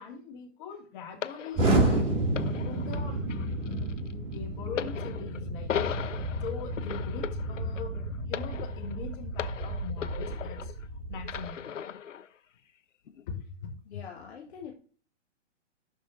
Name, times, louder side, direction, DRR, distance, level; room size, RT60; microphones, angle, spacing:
voice 1, 0.0-2.2 2.7-5.7 6.4-10.7 11.1-11.7 13.3-13.7, left 5 dB, 40° left, 2 dB, 2.5 m, -42 dB
sound 1, 1.2-10.9 11.2-12.3 13.1-13.2, left 8 dB, 80° left, 0.6 m, -38 dB
Explosion, 1.5-11.5, right 1 dB, 15° right, 2.5 m, -31 dB
voice 2, 13.8-14.7, left 7 dB, 60° left, 1 dB, 1.7 m, -43 dB
12.0 x 4.7 x 2.7 m, 0.38 s
figure-of-eight pair, 125°, 37 cm